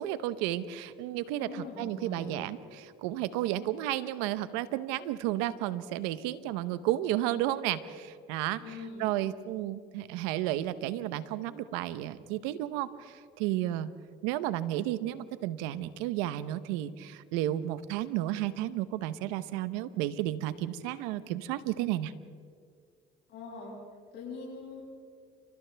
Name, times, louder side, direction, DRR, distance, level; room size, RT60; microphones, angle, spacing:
voice 1, 0.0-13.9 14.2-22.1, right 13 dB, 90° right, 14 dB, 0.9 m, -32 dB
voice 2, 1.3-2.4 8.6-9.1 23.3-23.7 24.1-24.8, left 3 dB, 70° left, -6 dB, 7.6 m, -42 dB
30.0 x 28.5 x 3.5 m, 2.1 s
supercardioid pair, 75°, 20 cm